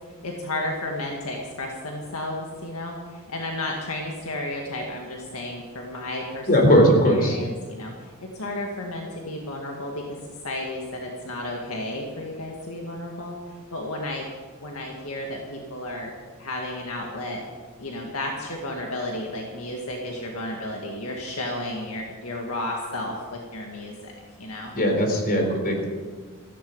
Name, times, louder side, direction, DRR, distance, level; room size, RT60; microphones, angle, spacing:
voice 1, 0.2-6.8 7.1-10.0 10.4-14.3 14.6-17.4 17.8-24.1 24.4-24.7, left 1 dB, 70° left, 0 dB, 2.0 m, -33 dB
voice 2, 6.5-7.4 24.7-25.9, equal, 40° left, 2 dB, 3.8 m, -19 dB
16.5 x 14.5 x 5.5 m, 1.5 s
head